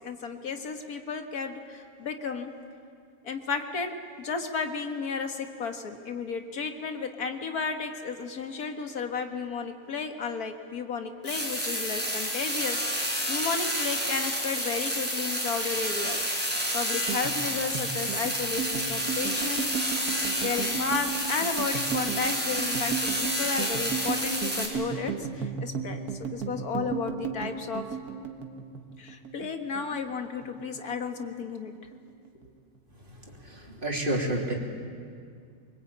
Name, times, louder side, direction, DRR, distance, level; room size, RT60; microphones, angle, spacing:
voice 1, 0.0-2.5 3.2-16.3 16.7-19.9 20.4-27.9 29.0-31.7, left 5 dB, 85° left, 5 dB, 2.1 m, -33 dB
sound 1, 11.2-24.6, equal, 5° right, 5.3 m, -30 dB
sound 2, 16.9-29.5 29.7-30.8 31.1-31.4 31.7-32.4, right 6 dB, 85° right, 2.0 m, -35 dB
voice 2, 33.4-34.5, right 1 dB, 35° right, -1 dB, 3.3 m, -29 dB
25.0 x 22.5 x 8.7 m, 2.2 s
omnidirectional pair, 1.5 m